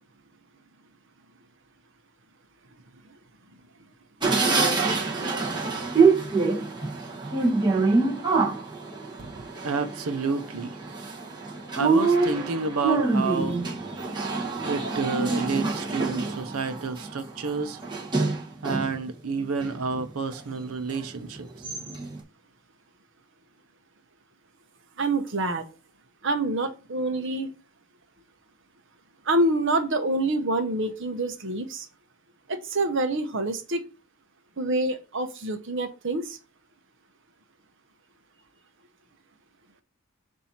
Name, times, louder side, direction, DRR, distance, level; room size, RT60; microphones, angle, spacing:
sound 1, 4.2-19.0 19.4-20.4 20.9-21.0 21.4-22.2, right 4 dB, 20° right, 1.2 m, -26 dB
voice 1, 9.6-10.8 11.7-13.6 14.6-17.8 18.6-21.7, right 4 dB, 85° right, 0.8 m, -30 dB
voice 2, 25.0-25.6 26.2-27.5 29.3-31.9 32.5-33.9 34.6-36.4, right 2 dB, 55° right, 0.9 m, -26 dB
7.3 x 2.7 x 5.8 m
head